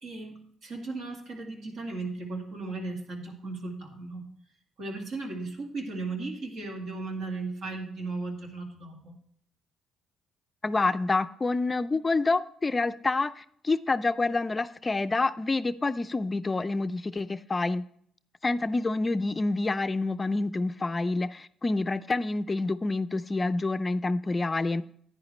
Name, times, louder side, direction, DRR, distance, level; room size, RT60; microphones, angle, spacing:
voice 1, 0.0-4.2 4.8-9.1, right 3 dB, 65° right, 3 dB, 2.1 m, -36 dB
voice 2, 10.6-17.8 18.4-24.8, left 3 dB, 25° left, 12 dB, 0.4 m, -27 dB
10.5 x 9.7 x 3.1 m, 0.64 s
cardioid pair, 80°, 0 cm